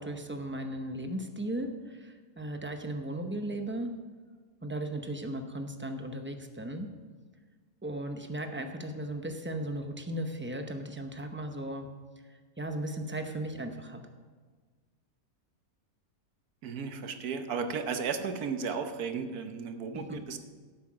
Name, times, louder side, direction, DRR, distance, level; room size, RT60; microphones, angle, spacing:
voice 1, 0.0-3.9 4.6-6.9 7.8-11.9 12.6-14.0 19.9-20.2, right 1 dB, 15° right, 6 dB, 0.4 m, -36 dB
voice 2, 16.6-20.4, right 5 dB, 80° right, 7 dB, 1.4 m, -34 dB
11.5 x 8.6 x 6.2 m, 1.4 s
omnidirectional pair, 1.6 m